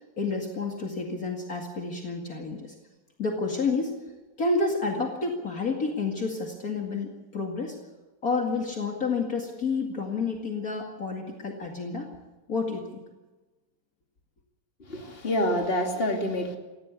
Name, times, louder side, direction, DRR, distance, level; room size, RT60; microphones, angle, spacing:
voice 1, 0.0-2.7 3.2-4.0 4.4-7.8 8.2-12.1 12.5-13.0, left 4 dB, 50° left, 1 dB, 2.6 m, -29 dB
voice 2, 14.8-16.6, left 1 dB, 30° left, 2 dB, 2.9 m, -27 dB
19.5 x 16.5 x 8.3 m, 1.2 s
omnidirectional pair, 2.0 m